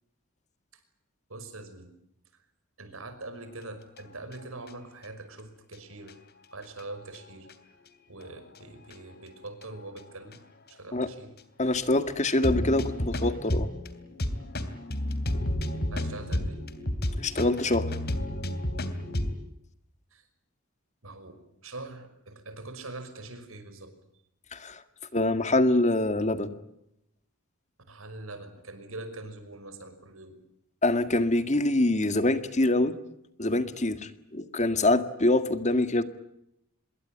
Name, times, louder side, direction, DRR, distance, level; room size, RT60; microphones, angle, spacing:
voice 1, 1.3-1.9 2.3-2.4 2.8-6.2 6.5-7.8 8.1-10.4 10.7-11.3 15.9-16.6 20.1-20.3 21.0-24.0 27.9-30.4, right 2 dB, 75° right, 10 dB, 5.6 m, -43 dB
sound 1, 4.0-4.7 5.0-5.1 5.7-5.8 6.1-6.2 6.6-7.5 8.2-8.6 8.9-9.0 9.6-10.0 10.3-10.4 10.7-10.8 11.4-11.5 11.7-11.8 12.3-19.3, left 1 dB, 50° left, 3.1 m, -31 dB
voice 2, 11.6-13.7 17.2-17.9 24.5-24.8 25.1-26.5 30.8-32.9 33.4-36.0, left 2 dB, 35° left, 10 dB, 1.8 m, -25 dB
26.5 x 23.0 x 9.0 m, 0.80 s
head